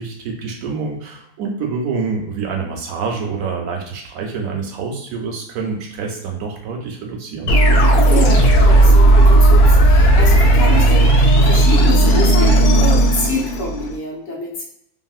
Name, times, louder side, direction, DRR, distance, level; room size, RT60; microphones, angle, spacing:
voice 1, 0.0-7.5, right 5 dB, 75° right, 2 dB, 1.0 m, -26 dB
sound 1, 7.5-13.9, right 1 dB, 90° left, 1.1 m, -12 dB
voice 2, 8.0-14.6, left 2 dB, 65° left, -4 dB, 1.4 m, -26 dB
2.8 x 2.7 x 2.3 m, 0.75 s
omnidirectional pair, 1.6 m